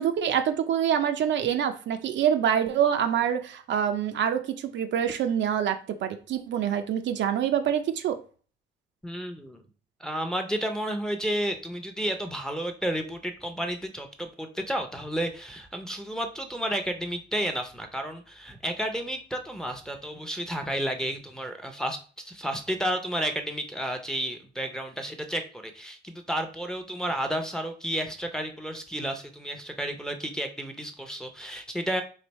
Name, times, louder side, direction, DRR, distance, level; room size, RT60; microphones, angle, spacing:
voice 1, 0.0-8.2, right 9 dB, 65° right, 7 dB, 0.5 m, -26 dB
voice 2, 9.0-9.6 10.0-32.0, equal, 5° left, 5 dB, 0.6 m, -32 dB
3.2 x 2.6 x 4.1 m, 0.39 s
cardioid pair, 90°, 20 cm